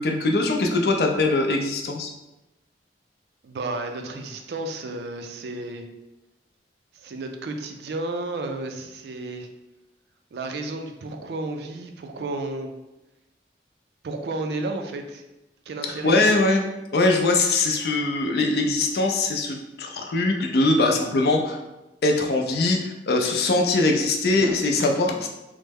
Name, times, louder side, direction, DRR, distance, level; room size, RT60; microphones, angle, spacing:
voice 1, 0.0-2.1 16.0-16.6 16.9-21.6 22.0-25.3, left 2 dB, 60° left, 2 dB, 0.4 m, -22 dB
voice 2, 3.4-5.8 6.9-9.5 10.3-12.7 14.0-15.2 15.7-16.1, right 2 dB, 70° right, 5 dB, 0.4 m, -32 dB
3.1 x 2.0 x 3.4 m, 0.98 s
head